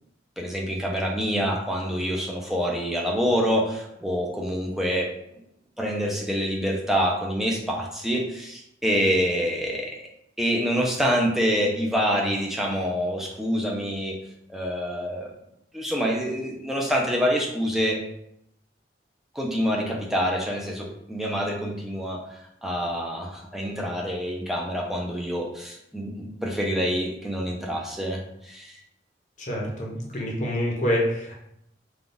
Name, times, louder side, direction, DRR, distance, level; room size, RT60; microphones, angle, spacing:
voice 1, 0.4-5.1 5.8-9.9 10.4-14.2 14.5-15.3 15.7-18.0 19.3-28.8, equal, ahead, -1 dB, 0.5 m, -26 dB
voice 2, 29.4-31.4, equal, 40° left, -2 dB, 0.8 m, -27 dB
3.7 x 2.3 x 3.8 m, 0.77 s
head